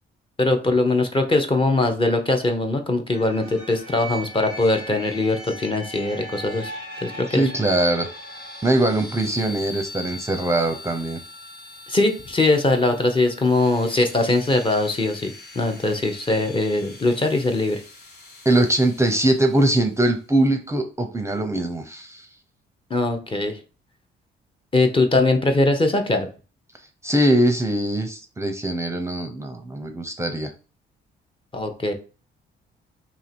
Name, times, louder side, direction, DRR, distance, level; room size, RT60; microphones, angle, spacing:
voice 1, 0.4-6.7 7.0-7.4 11.9-17.8 22.9-23.6 24.7-26.3 31.5-31.9, left 2 dB, 25° left, 5 dB, 0.7 m, -21 dB
sound 1, 3.1-19.8, left 1 dB, 55° left, 1.2 m, -40 dB
voice 2, 7.3-8.1 8.6-11.2 18.4-22.3 27.0-30.5, right 1 dB, 15° right, 4 dB, 0.6 m, -22 dB
2.9 x 2.7 x 4.3 m, 0.35 s
cardioid pair, 90°, 20 cm